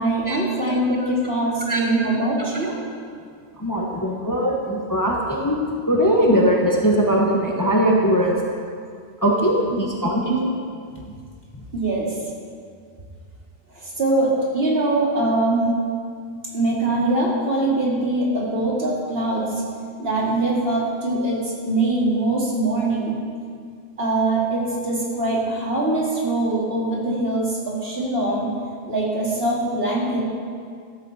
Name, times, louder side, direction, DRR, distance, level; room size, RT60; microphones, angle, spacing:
voice 1, 0.0-2.8 11.7-12.2 13.7-15.7 16.5-19.6 20.0-23.2 24.0-28.5 28.9-30.2, right 2 dB, 50° right, -4 dB, 2.8 m, -22 dB
voice 2, 3.6-5.6 5.9-8.4 9.2-10.5, equal, 15° left, -2 dB, 1.2 m, -20 dB
14.0 x 12.5 x 4.2 m, 2.2 s
omnidirectional pair, 1.3 m